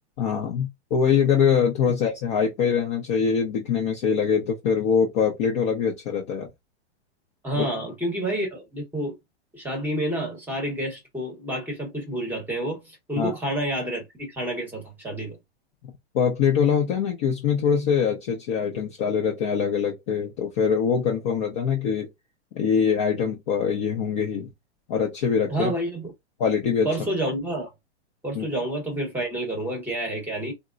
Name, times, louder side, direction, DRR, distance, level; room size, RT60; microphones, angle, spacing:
voice 1, 0.2-6.5 7.6-7.7 13.2-13.3 16.1-22.1 22.6-24.5 24.9-25.7 26.4-26.9 28.3-28.5, left 7 dB, 25° left, 0.4 m, -23 dB
voice 2, 7.4-9.2 9.5-15.4 25.5-26.1 26.8-27.7 28.2-30.5, right 1 dB, 5° right, 0.8 m, -29 dB
3.5 x 2.0 x 2.3 m
hypercardioid pair, 150°, 34 cm